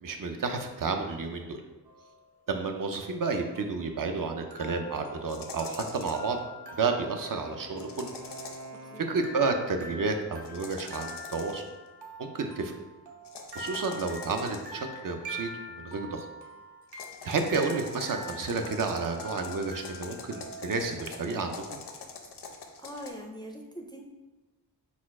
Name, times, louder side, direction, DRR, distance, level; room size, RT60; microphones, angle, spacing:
voice 1, 0.0-1.6 2.5-6.4 6.8-8.1 9.0-11.6 12.2-12.8 13.5-16.3 17.2-21.8, right 4 dB, 55° right, 4 dB, 0.5 m, -31 dB
sound 1, 1.9-2.3 3.6-21.8, right 1 dB, 75° right, 0.8 m, -45 dB
sound 2, 5.3-6.3 7.8-8.8 10.4-11.7 13.2-14.8 16.9-23.1, left 5 dB, 85° left, 0.6 m, -44 dB
Wind instrument woodwind instrument, 6.5-10.3, left 1 dB, 35° right, 0.8 m, -50 dB
voice 2, 22.8-24.0, equal, 10° left, 2 dB, 0.3 m, -42 dB
4.1 x 2.3 x 4.6 m, 1.2 s
wide cardioid pair, 115°, 39 cm